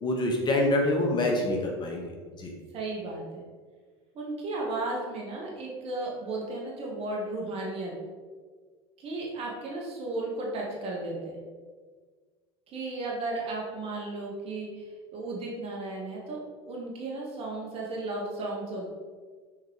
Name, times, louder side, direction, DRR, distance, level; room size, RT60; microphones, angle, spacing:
voice 1, 0.0-2.1 2.3-2.5, left 1 dB, 35° left, 0 dB, 1.6 m, -26 dB
voice 2, 2.7-3.4 4.1-7.9 9.0-11.4 12.7-16.4 16.6-18.9, right 2 dB, 45° right, -2 dB, 2.0 m, -34 dB
7.4 x 4.6 x 4.8 m, 1.5 s
hypercardioid pair, 80°, 14 cm